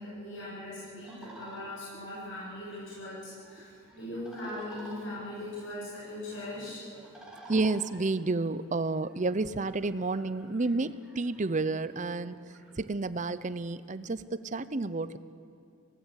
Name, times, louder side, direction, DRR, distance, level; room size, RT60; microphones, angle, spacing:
voice 1, 0.0-7.0 7.4-7.5, left 1 dB, 75° left, -7 dB, 7.7 m, -40 dB
sound 1, 1.0-12.7, right 1 dB, 5° right, 3.9 m, -54 dB
voice 2, 7.5-12.4 12.8-15.2, right 3 dB, 40° right, 15 dB, 0.7 m, -30 dB
24.5 x 18.5 x 8.1 m, 2.5 s
head